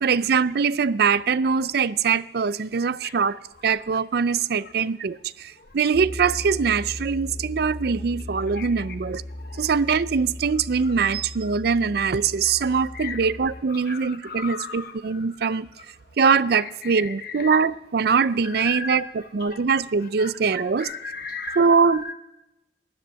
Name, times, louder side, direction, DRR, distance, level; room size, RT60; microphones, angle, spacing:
voice 1, 0.0-9.2 9.6-15.7 16.2-20.9 21.6-22.1, right 5 dB, 55° right, 0.4 m, -22 dB
sound 1, 5.9-13.6, left 1 dB, 25° left, 0.5 m, -37 dB
voice 2, 12.9-13.3 13.7-14.9 16.8-17.5 18.5-19.1 19.4-19.6 20.2-20.3 20.8-21.7 22.0-22.1, left 5 dB, 55° left, 0.8 m, -36 dB
13.0 x 10.5 x 10.0 m
head